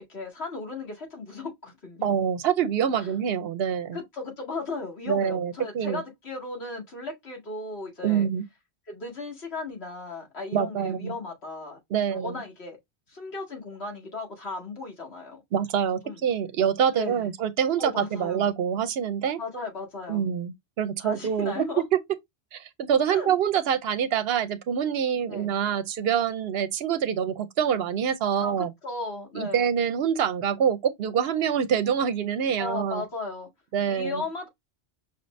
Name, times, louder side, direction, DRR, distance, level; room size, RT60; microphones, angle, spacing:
voice 1, 0.1-2.1 3.0-3.1 3.9-8.3 8.9-11.8 12.1-12.8 13.1-15.4 16.0-16.2 16.9-17.3 17.8-18.4 19.4-20.3 21.0-21.8 23.1-23.4 25.3-25.5 28.4-29.7 32.6-33.5 33.9-34.5, left 3 dB, 75° left, 2.3 m, -36 dB
voice 2, 2.0-4.0 5.1-6.0 8.0-8.4 10.5-11.2 11.9-12.4 15.5-19.4 20.1-21.7 21.9-22.0 22.5-28.7 29.3-33.0 33.7-34.2, right 8 dB, 70° right, 0.8 m, -26 dB
5.6 x 2.6 x 3.1 m
omnidirectional pair, 1.1 m